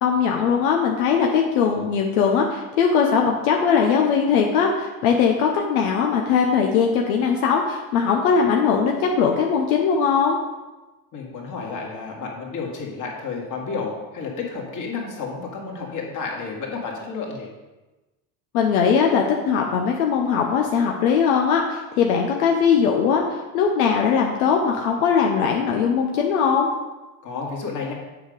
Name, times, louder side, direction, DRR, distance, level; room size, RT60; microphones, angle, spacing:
voice 1, 0.0-10.4 18.5-26.7, left 6 dB, 85° left, 1 dB, 0.9 m, -20 dB
voice 2, 11.1-17.5 27.2-27.9, left 4 dB, 45° left, -1 dB, 2.3 m, -31 dB
7.2 x 5.0 x 5.2 m, 1.1 s
supercardioid pair, 90°, 42 cm